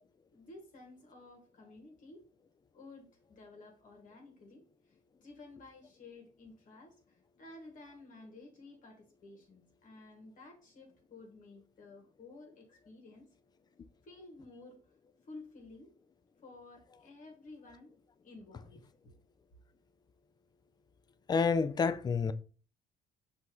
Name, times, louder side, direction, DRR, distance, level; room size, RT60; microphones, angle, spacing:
voice 1, 0.3-2.2 2.7-13.3 14.0-14.8 15.2-15.9 16.4-17.9 18.2-19.1, left 2 dB, 50° left, 1.5 m, -53 dB
voice 2, 21.3-22.3, left 5 dB, 25° left, 0.4 m, -28 dB
5.6 x 2.8 x 3.0 m
cardioid pair, 110°, 17 cm